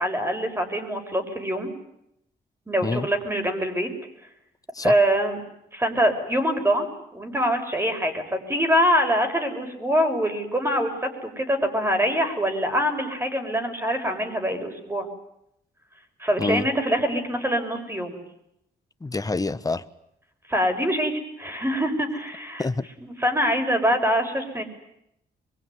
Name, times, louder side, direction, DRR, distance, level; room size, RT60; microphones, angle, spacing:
voice 1, 0.0-1.7 2.7-3.9 4.8-5.4 5.7-6.9 7.1-10.9 11.2-15.1 16.2-18.2 20.5-21.1 21.4-22.6 23.0-24.6, equal, 15° right, 6 dB, 6.5 m, -24 dB
voice 2, 19.0-19.9 22.6-22.9, left 3 dB, 20° left, 12 dB, 1.3 m, -26 dB
23.5 x 23.0 x 9.7 m, 0.79 s
cardioid pair, 85°, 18 cm